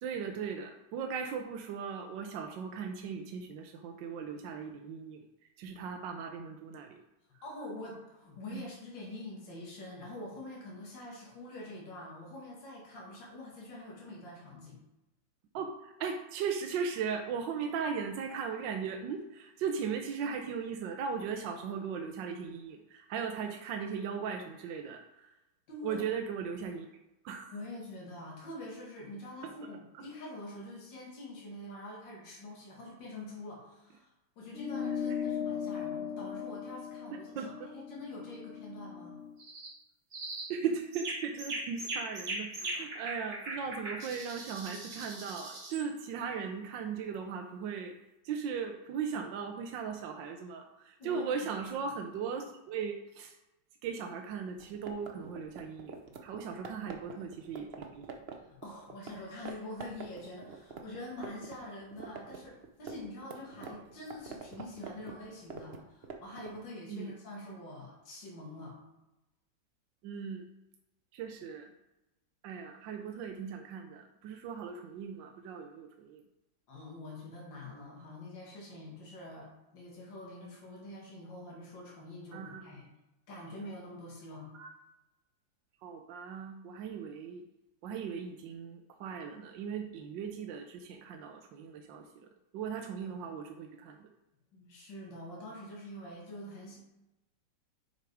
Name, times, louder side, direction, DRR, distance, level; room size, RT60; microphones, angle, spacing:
voice 1, 0.0-5.2 5.6-7.0 8.5-8.6 15.5-25.3 25.8-26.9 27.2-27.5 37.4-37.5 40.5-47.9 48.2-53.4 53.8-55.9 56.2-58.1 66.9-67.1 70.0-70.4 71.1-71.7 72.4-76.2 82.3-82.7 84.5-84.7 85.8-87.4 87.8-92.3 92.5-94.1, right 6 dB, 75° right, 4 dB, 1.3 m, -38 dB
voice 2, 7.4-14.8 25.7-26.0 27.5-34.1 34.4-39.2 51.0-51.5 58.4-68.8 76.7-82.9 83.3-84.6 93.1-93.3 94.5-96.8, left 1 dB, 75° left, -3 dB, 2.6 m, -45 dB
sound 1, 34.5-39.3, left 7 dB, 90° left, 0.5 m, -38 dB
sound 2, 39.4-39.7 40.1-40.5 40.9-45.9, right 2 dB, 35° right, 1.5 m, -40 dB
sound 3, 54.5-59.1 59.4-59.5 59.8-61.6 61.8-66.6, right 5 dB, 55° right, 0.6 m, -45 dB
6.8 x 5.3 x 4.7 m, 0.95 s
omnidirectional pair, 2.0 m